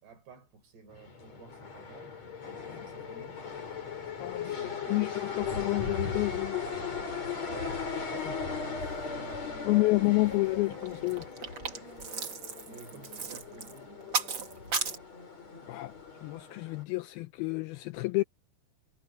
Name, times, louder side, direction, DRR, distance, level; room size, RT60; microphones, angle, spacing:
voice 1, 0.0-2.2 2.6-3.5 4.4-5.8 7.5-10.0 10.4-10.5 11.7-11.9 12.6-14.6, right 5 dB, 75° right, 7.2 m, -51 dB
sound 1, 0.9-16.8, left 5 dB, 40° left, 6.4 m, -38 dB
voice 2, 4.2-4.5 4.9-6.6 9.7-11.3 15.7-15.9 16.2-18.2, left 22 dB, 85° left, 2.2 m, -29 dB
sound 2, 9.7-9.8 10.0-10.3 10.7-15.0, right 5 dB, 40° right, 1.9 m, -35 dB
omnidirectional pair, 4.8 m